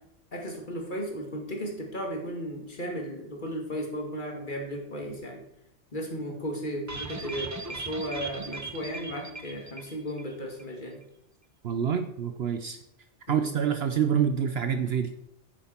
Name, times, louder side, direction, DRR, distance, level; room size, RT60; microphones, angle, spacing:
voice 1, 0.3-5.4 5.9-11.0 13.3-13.5, equal, 40° left, 1 dB, 2.2 m, -35 dB
sound 1, 6.9-10.3 10.6-10.7 11.0-11.1, right 3 dB, 20° right, 0.6 m, -38 dB
voice 2, 11.6-12.8 13.3-15.2, right 8 dB, 60° right, 8 dB, 0.8 m, -27 dB
9.8 x 9.2 x 4.4 m, 0.79 s
omnidirectional pair, 1.3 m